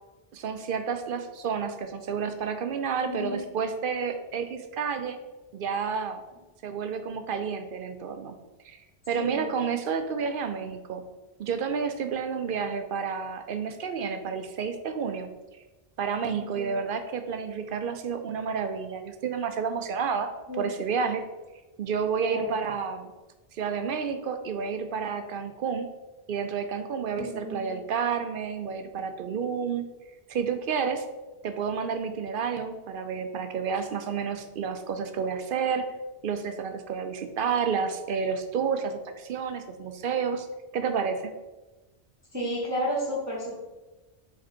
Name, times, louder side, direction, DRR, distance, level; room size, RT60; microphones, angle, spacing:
voice 1, 0.3-5.2 5.5-6.2 6.6-8.4 8.6-8.8 9.1-11.0 11.4-15.3 16.0-20.3 20.6-21.2 21.8-23.1 23.5-25.9 26.3-29.8 30.3-31.0 31.4-35.8 36.2-40.5 40.7-41.3, right 6 dB, 60° right, 7 dB, 0.7 m, -30 dB
voice 2, 3.0-3.4 9.2-9.5 16.4-16.8 20.5-20.7 22.3-22.5 27.2-27.8 42.3-43.5, equal, 15° right, -5 dB, 1.1 m, -32 dB
5.0 x 4.4 x 4.3 m, 1.1 s
omnidirectional pair, 1.0 m